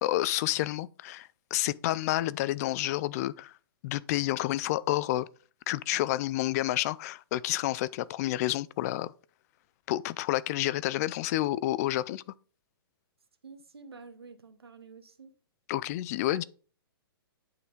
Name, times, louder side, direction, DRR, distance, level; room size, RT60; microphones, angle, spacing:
voice 1, 0.0-3.5 3.8-5.3 5.7-9.1 9.9-12.2 15.7-16.4, left 15 dB, 40° left, 0.4 m, -29 dB
voice 2, 13.4-15.3 16.3-16.4, right 4 dB, 85° right, 1.0 m, -49 dB
9.2 x 5.7 x 3.8 m
hypercardioid pair, 125°, 13 cm